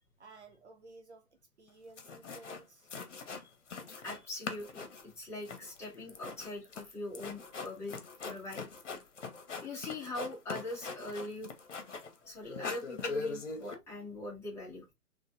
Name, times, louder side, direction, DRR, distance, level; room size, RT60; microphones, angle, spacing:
voice 1, 0.2-1.3 1.6-2.9, right 3 dB, 50° right, 0.7 m, -54 dB
sound 1, 1.7-1.8 2.0-2.6 2.9-4.2 4.4-12.2 12.5-13.7, left 4 dB, 55° left, 1.1 m, -41 dB
voice 2, 3.9-8.7 9.6-11.5 12.2-14.9, left 2 dB, 5° left, 1.3 m, -42 dB
4.1 x 3.2 x 2.5 m
figure-of-eight pair, 135°, 45 cm